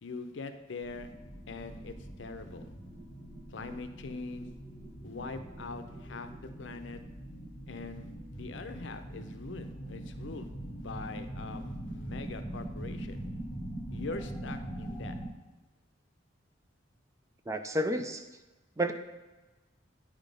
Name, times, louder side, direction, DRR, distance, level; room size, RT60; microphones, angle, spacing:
voice 1, 0.0-1.1 1.5-2.7 3.5-4.5 5.0-7.0 7.7-10.5 10.8-13.3 13.9-15.1, left 3 dB, 75° left, 8 dB, 0.6 m, -42 dB
sound 1, 0.8-15.3, right 1 dB, ahead, 1.1 m, -42 dB
voice 2, 17.5-18.2 18.8-18.9, right 1 dB, 15° right, 7 dB, 0.4 m, -30 dB
9.0 x 3.7 x 5.2 m, 1.1 s
head